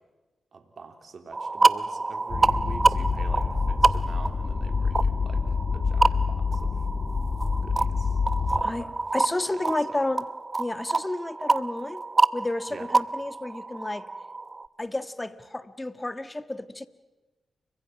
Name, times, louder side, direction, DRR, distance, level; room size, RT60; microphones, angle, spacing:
voice 1, 0.5-5.4 5.7-6.8 7.6-8.2 8.5-10.0 12.7-12.9, right 4 dB, 60° right, 6 dB, 3.2 m, -46 dB
sound 1, 1.3-14.7, right 3 dB, 35° right, 0.9 m, -27 dB
sound 2, 2.3-8.6, left 4 dB, 50° left, 2.1 m, -27 dB
voice 2, 8.6-10.2 10.6-12.0 12.3-14.1 14.8-16.9, left 2 dB, 20° left, 12 dB, 1.6 m, -31 dB
29.5 x 24.5 x 6.0 m, 1.1 s
supercardioid pair, 50°, 0 cm